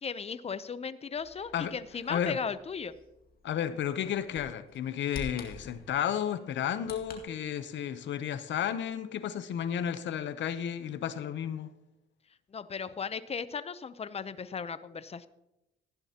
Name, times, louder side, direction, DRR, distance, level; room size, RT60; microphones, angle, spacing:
voice 1, 0.0-2.9 12.5-15.3, left 6 dB, 30° left, 0.7 m, -36 dB
Bird vocalization bird call bird song, 1.1-7.2, left 4 dB, 50° left, 2.1 m, -49 dB
voice 2, 3.4-11.7, left 9 dB, 70° left, 0.8 m, -32 dB
15.0 x 10.5 x 2.9 m
cardioid pair, 90°, 20 cm